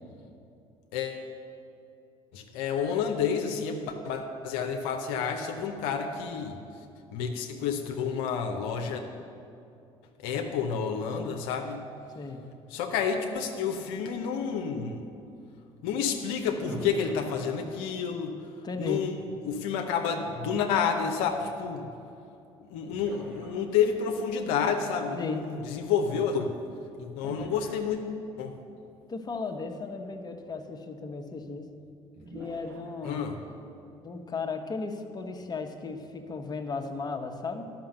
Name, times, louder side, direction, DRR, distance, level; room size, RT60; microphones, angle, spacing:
voice 1, 0.9-1.2 2.3-6.6 7.1-9.0 10.2-11.8 12.7-15.1 15.8-18.4 18.8-21.9 22.6-26.5 27.0-28.5 33.0-33.4, left 6 dB, 80° left, 4 dB, 0.7 m, -30 dB
sound 1, 16.7-18.1 22.1-22.2 22.9-24.1 27.2-28.5 29.8-29.9 30.4-30.5 32.1-33.4, equal, 90° right, 1.9 m, -44 dB
voice 2, 18.6-19.1 25.1-25.5 27.2-27.4 29.1-31.7 32.3-33.2 34.0-37.7, left 4 dB, 30° left, 5 dB, 1.0 m, -36 dB
11.5 x 6.0 x 6.6 m, 2.7 s
hypercardioid pair, 60°, 13 cm